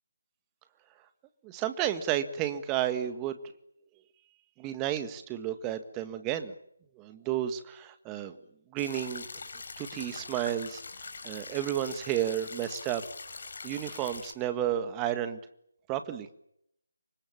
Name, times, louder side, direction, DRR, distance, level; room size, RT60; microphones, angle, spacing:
voice 1, 1.4-3.4 4.6-6.5 6.9-8.4 8.7-9.3 9.8-10.8 11.2-13.0 13.6-15.4 15.9-16.3, right 11 dB, 15° right, 9 dB, 1.7 m, -32 dB
sound 1, 8.8-14.3, left 4 dB, 50° left, 4.6 m, -43 dB
28.0 x 25.0 x 7.3 m, 0.76 s
figure-of-eight pair, 155°, 0 cm